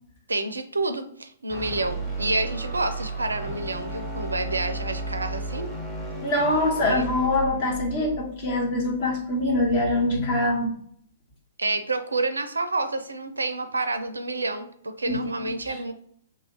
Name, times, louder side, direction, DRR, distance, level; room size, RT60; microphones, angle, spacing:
voice 1, 0.3-5.7 6.9-7.1 11.6-15.9, right 2 dB, 75° right, 9 dB, 0.4 m, -29 dB
sound 1, 1.5-9.6, right 2 dB, 10° left, 0.9 m, -34 dB
voice 2, 6.2-10.7 15.1-15.3, left 1 dB, 40° left, -1 dB, 1.1 m, -24 dB
2.7 x 2.4 x 3.8 m, 0.64 s
figure-of-eight pair, 115°, 0 cm